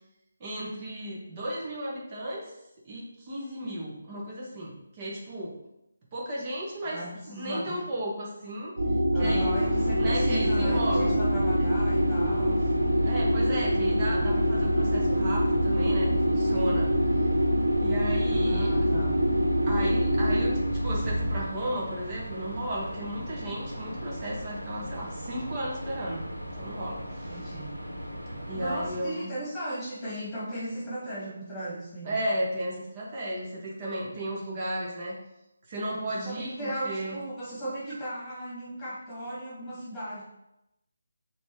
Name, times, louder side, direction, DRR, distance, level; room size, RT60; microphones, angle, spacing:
voice 1, 0.4-2.5 2.8-5.6 6.1-7.0 7.3-8.7 9.1-9.5 9.9-11.1 13.0-17.2 17.8-18.7 19.6-27.5 28.5-29.3 32.0-35.1 35.7-37.2, right 1 dB, 25° right, -4 dB, 1.6 m, -34 dB
voice 2, 6.8-7.8 9.1-12.7 18.3-19.2 27.3-27.8 28.5-32.2 36.0-40.2, right 1 dB, 5° left, -8 dB, 2.3 m, -37 dB
sound 1, 8.8-21.4, equal, 70° right, 1.7 m, -25 dB
sound 2, 9.2-29.0, equal, 90° right, 1.3 m, -38 dB
6.0 x 3.8 x 4.7 m, 0.86 s
figure-of-eight pair, 150°, 0 cm